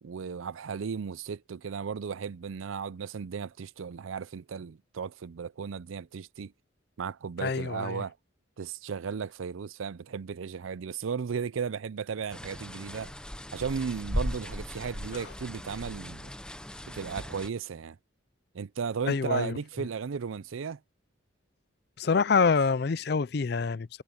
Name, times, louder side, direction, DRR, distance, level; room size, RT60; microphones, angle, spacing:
voice 1, 0.0-6.5 7.0-8.2 8.6-13.1 13.5-16.3 16.9-18.0 18.5-20.8, right 6 dB, 85° right, 0.5 m, -35 dB
voice 2, 7.4-8.0 19.1-19.5 22.0-24.0, left 5 dB, 55° left, 0.5 m, -26 dB
sound 1, 12.3-17.5, equal, 5° left, 0.8 m, -37 dB
head